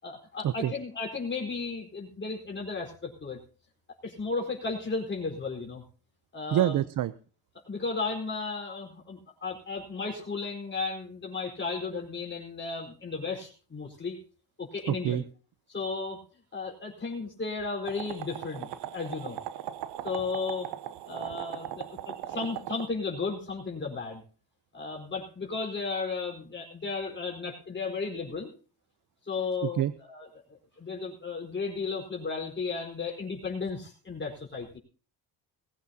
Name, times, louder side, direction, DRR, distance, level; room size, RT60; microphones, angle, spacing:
voice 1, 0.0-3.4 4.0-5.8 6.3-6.8 7.6-14.2 14.6-15.2 15.7-16.2 16.5-19.4 20.0-20.7 21.0-24.2 24.7-28.5 29.2-29.8 30.1-34.8, left 4 dB, 25° left, 0 dB, 4.6 m, -34 dB
voice 2, 6.5-7.1 14.9-15.2 29.6-29.9, right 12 dB, 50° right, 14 dB, 0.8 m, -26 dB
sound 1, 17.9-22.9, right 12 dB, 75° right, 1.1 m, -39 dB
20.0 x 15.0 x 2.9 m, 0.39 s
cardioid pair, 120°, 41 cm